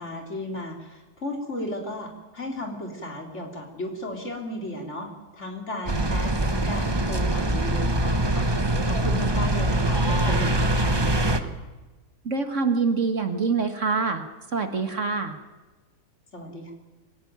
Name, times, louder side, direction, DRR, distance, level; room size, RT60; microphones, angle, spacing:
voice 1, 0.0-11.5 16.3-16.7, left 1 dB, 45° left, 2 dB, 4.0 m, -35 dB
sound 1, 5.9-11.4, right 1 dB, 20° right, 1.1 m, -23 dB
voice 2, 12.2-14.2 14.5-15.3, right 4 dB, 50° right, 6 dB, 2.0 m, -25 dB
24.5 x 16.5 x 9.5 m, 1.2 s
omnidirectional pair, 1.7 m